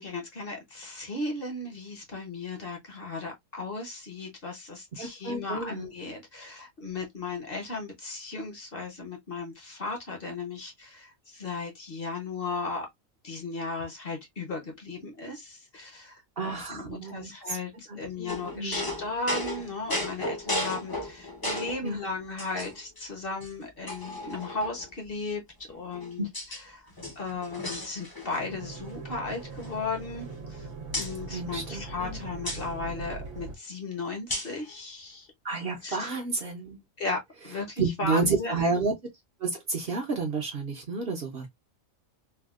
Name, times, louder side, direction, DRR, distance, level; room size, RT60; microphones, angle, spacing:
voice 1, 0.0-12.9 13.2-25.4 25.7-26.9 27.2-30.7 30.9-35.3 35.8-36.2 37.0-38.8, left 3 dB, 45° left, 0.9 m, -36 dB
voice 2, 5.0-5.9 16.4-17.3 17.9-18.9 21.8-22.0 26.2-26.3 31.3-32.2 35.4-36.8 37.8-38.9 39.4-41.5, right 3 dB, 50° right, 0.9 m, -30 dB
sound 1, 18.3-21.9 22.4-23.0 23.4-23.5 23.9-24.9 25.7-26.6 26.9-28.5 28.7-29.0 29.3-30.6 30.9-31.1 32.5-32.6 34.3-34.6, left 1 dB, 25° left, 0.6 m, -35 dB
sound 2, 28.4-33.6, right 3 dB, 80° right, 1.1 m, -40 dB
3.4 x 2.3 x 2.3 m
omnidirectional pair, 1.4 m